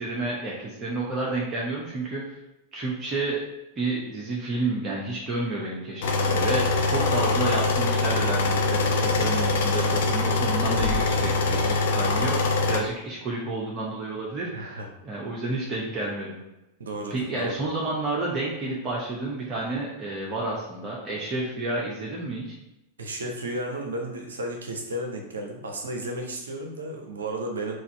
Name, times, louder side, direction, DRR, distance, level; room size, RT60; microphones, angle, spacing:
voice 1, 0.0-2.4 2.7-3.4 3.8-16.4 17.1-22.6, right 2 dB, 30° right, -4 dB, 0.9 m, -30 dB
sound 1, 6.0-12.8, left 3 dB, 55° left, 0.7 m, -23 dB
voice 2, 14.5-14.9 16.8-17.6 23.0-27.8, right 1 dB, 70° right, 2 dB, 0.6 m, -33 dB
3.9 x 2.5 x 4.4 m, 0.94 s
figure-of-eight pair, 90°, 0 cm